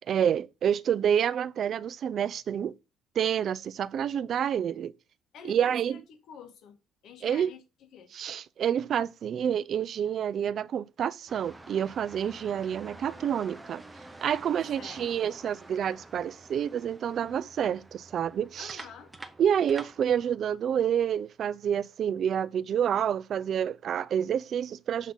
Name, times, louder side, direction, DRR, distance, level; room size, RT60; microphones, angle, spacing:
voice 1, 0.1-2.7 3.2-4.9 5.5-6.0 7.2-7.5 8.1-13.8 14.2-18.8 19.4-25.1, right 9 dB, 45° right, 0.3 m, -28 dB
voice 2, 5.3-6.8 7.0-8.1 14.6-15.0 18.6-19.1, left 7 dB, 60° left, 1.5 m, -48 dB
sound 1, 11.3-20.4, right 2 dB, 10° right, 0.7 m, -48 dB
7.3 x 3.7 x 5.5 m
cardioid pair, 145°, 0 cm